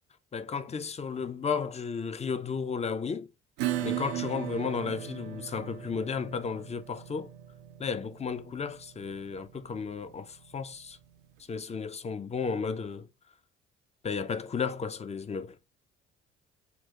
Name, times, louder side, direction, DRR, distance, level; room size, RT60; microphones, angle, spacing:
voice 1, 0.3-3.3 3.8-7.3 7.8-11.0 11.5-13.1 14.0-15.6, left 5 dB, 20° left, 0.6 m, -33 dB
Acoustic guitar / Strum, 3.6-10.8, right 13 dB, 65° right, 0.6 m, -38 dB
5.9 x 2.3 x 2.9 m
figure-of-eight pair, 50°, 33 cm